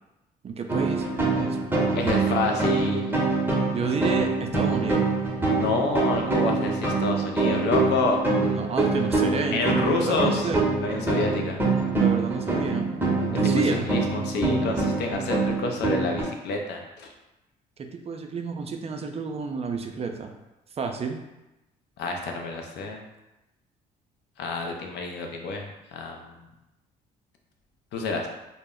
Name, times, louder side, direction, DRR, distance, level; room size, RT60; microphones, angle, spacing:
voice 1, 0.4-1.1 1.4-2.2 3.7-5.1 8.5-10.6 12.0-12.9 13.3-13.9 17.8-20.3 20.8-21.2, right 4 dB, 35° right, 4 dB, 0.4 m, -30 dB
sound 1, 0.7-16.2, right 3 dB, 10° right, 0.7 m, -25 dB
voice 2, 1.9-3.1 5.5-8.2 9.5-10.5 10.8-11.6 13.4-17.1 22.0-23.0 24.4-26.4 27.9-28.3, left 3 dB, 65° left, 2 dB, 0.5 m, -28 dB
2.0 x 2.0 x 3.6 m, 0.97 s
supercardioid pair, 65°, 19 cm